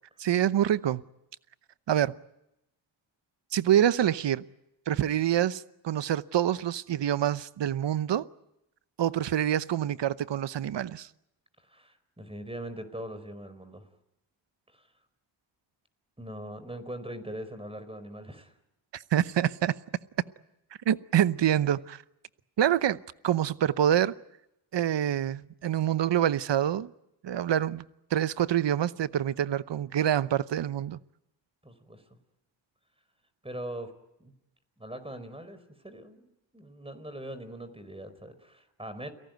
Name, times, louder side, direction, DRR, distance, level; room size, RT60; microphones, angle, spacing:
voice 1, 0.2-1.0 1.9-2.1 3.5-4.4 4.9-8.2 9.0-11.1 18.9-19.7 20.9-22.0 22.6-23.0 23.2-24.1 24.7-26.9 27.2-27.9 28.1-31.0, right 10 dB, 65° right, 0.9 m, -26 dB
voice 2, 11.6-13.9 14.7-14.9 16.2-18.5 31.6-32.0 33.4-33.9 34.2-34.3 34.8-36.3 36.5-39.1, right 1 dB, 10° right, 4.7 m, -41 dB
29.5 x 18.0 x 9.3 m
cardioid pair, 55°, 47 cm